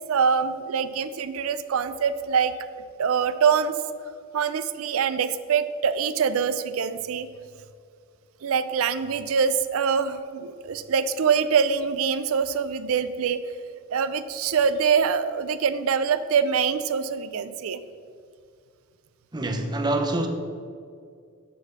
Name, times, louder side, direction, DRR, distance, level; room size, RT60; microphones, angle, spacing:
voice 1, 0.1-2.5 3.0-3.7 4.3-7.3 8.4-13.4 13.9-17.8, right 6 dB, 70° right, 12 dB, 0.4 m, -24 dB
voice 2, 19.3-20.3, right 2 dB, 20° right, 4 dB, 0.8 m, -25 dB
8.2 x 4.0 x 6.9 m, 2.2 s
head